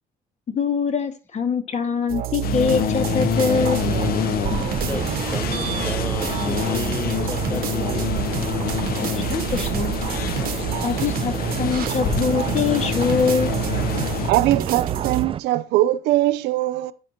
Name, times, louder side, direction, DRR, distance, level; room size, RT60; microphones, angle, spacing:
voice 1, 0.5-3.9 9.1-9.9 10.8-11.3 11.6-13.6, left 5 dB, 40° left, 2.0 m, -23 dB
sound 1, 2.1-4.2 4.5-15.2, right 10 dB, 60° right, 1.1 m, -29 dB
sound 2, 2.4-14.3, left 9 dB, 60° left, 0.8 m, -27 dB
sound 3, 3.3-15.4, right 7 dB, 35° right, 0.4 m, -30 dB
voice 2, 4.8-8.2 11.1-11.3, left 2 dB, 15° left, 0.7 m, -34 dB
voice 3, 14.3-16.9, right 15 dB, 90° right, 0.8 m, -21 dB
10.0 x 9.9 x 3.0 m
cardioid pair, 110°, 17 cm